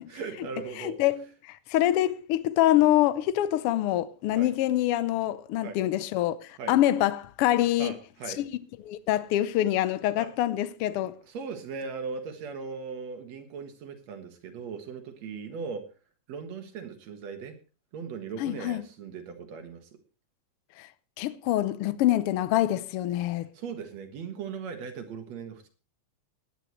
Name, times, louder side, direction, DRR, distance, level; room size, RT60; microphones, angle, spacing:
voice 1, 0.1-1.0 4.3-4.5 5.6-5.8 6.6-6.8 7.8-8.4 10.2-10.3 11.2-15.8 16.3-17.6 17.9-19.9 23.5-25.7, right 5 dB, 65° right, 2.7 m, -38 dB
voice 2, 0.8-8.0 8.4-8.5 8.8-11.1 18.4-18.8 20.8-20.9 21.2-23.5, left 13 dB, 90° left, 1.2 m, -25 dB
18.5 x 10.5 x 3.1 m
omnidirectional pair, 3.4 m